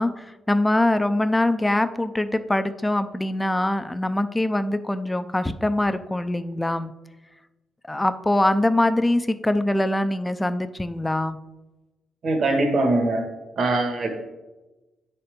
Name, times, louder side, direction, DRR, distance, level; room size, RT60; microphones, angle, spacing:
voice 1, 0.0-6.9 7.9-11.4, left 1 dB, 10° left, 11 dB, 0.5 m, -23 dB
voice 2, 12.2-13.2 13.6-14.1, right 2 dB, 50° right, 2 dB, 1.6 m, -22 dB
9.2 x 4.3 x 5.2 m, 1.1 s
cardioid pair, 90°, 0 cm